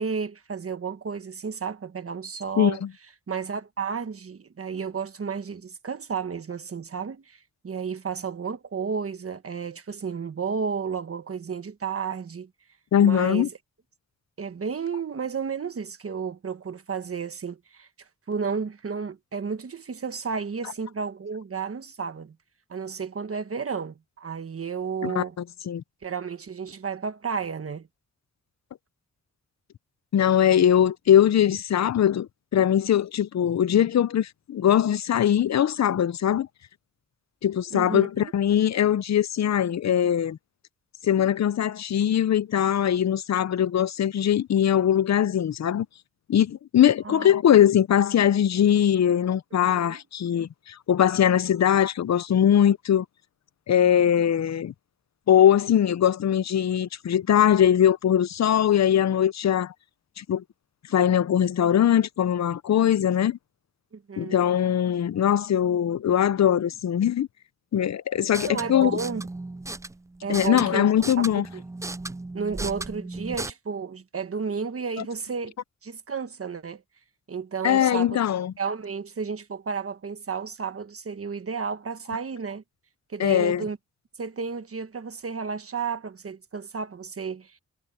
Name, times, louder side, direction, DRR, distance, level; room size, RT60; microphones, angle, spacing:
voice 1, 0.0-2.8 3.3-12.5 13.0-13.5 14.4-22.3 22.7-25.4 26.0-27.9 37.7-38.3 47.0-47.3 49.7-50.0 63.9-64.4 68.5-69.2 70.2-70.9 71.2-71.6 72.3-75.5 75.8-76.8 77.3-78.2 78.6-82.6 83.1-83.8 84.2-87.6, right 5 dB, 50° right, 1.4 m, -32 dB
voice 2, 2.6-2.9 12.9-13.5 25.0-25.2 25.7-25.8 30.1-36.5 37.4-40.4 41.0-45.9 46.3-53.1 53.7-54.7 55.3-59.7 60.2-60.4 60.9-63.4 64.2-67.3 67.7-69.0 70.3-71.5 75.0-75.1 77.6-78.5 83.2-83.7, left 10 dB, 65° left, 0.6 m, -21 dB
sound 1, 68.2-73.5, right 2 dB, 10° right, 0.4 m, -36 dB
wide cardioid pair, 100°, 29 cm